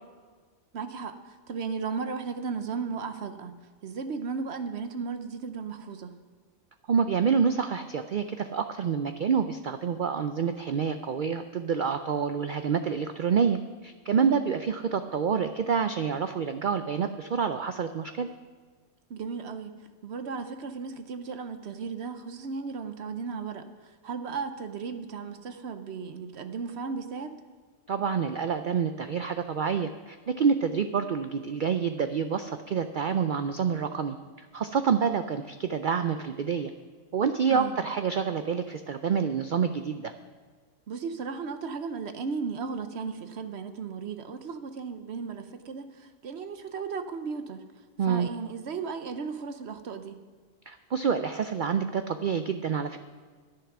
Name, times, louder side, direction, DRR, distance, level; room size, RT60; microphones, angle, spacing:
voice 1, 0.7-3.5 3.8-6.1 14.2-14.4 19.1-19.7 20.0-23.7 24.0-27.3 37.5-37.8 40.9-47.6 48.0-50.2, right 5 dB, 55° right, 9 dB, 1.0 m, -35 dB
voice 2, 6.9-18.3 27.9-36.7 37.1-40.1 48.0-48.3 50.7-53.0, right 6 dB, 80° right, 9 dB, 0.4 m, -27 dB
11.0 x 10.0 x 6.0 m, 1.6 s
omnidirectional pair, 1.5 m